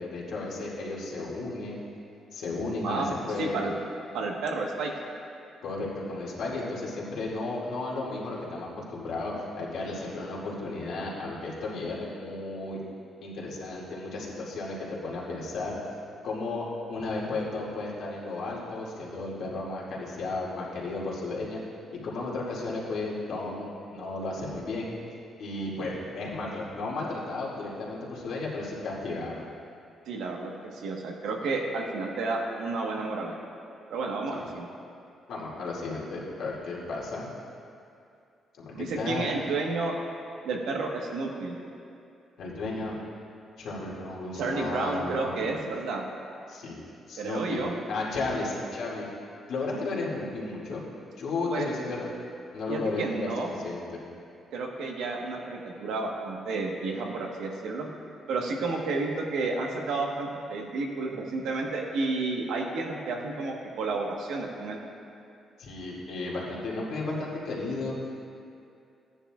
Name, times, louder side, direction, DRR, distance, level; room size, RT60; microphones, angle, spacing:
voice 1, 0.0-1.8 2.3-3.6 5.6-12.8 13.2-15.7 16.2-21.6 22.0-24.9 25.4-29.5 34.3-34.4 35.3-37.3 38.6-39.3 42.4-42.9 43.6-45.5 46.5-46.8 47.1-47.6 47.9-49.1 49.5-50.8 51.2-52.1 52.5-54.0 65.6-67.9, left 3 dB, 70° left, -5 dB, 2.2 m, -34 dB
voice 2, 3.4-3.7 4.1-4.9 30.1-33.4 33.9-34.7 38.7-40.0 40.4-41.6 44.4-46.0 47.2-47.8 51.5-51.7 52.7-53.5 54.5-57.9 58.3-64.8, right 3 dB, 90° right, 0 dB, 1.3 m, -31 dB
14.5 x 9.8 x 2.4 m, 2.5 s
cardioid pair, 150°, 0 cm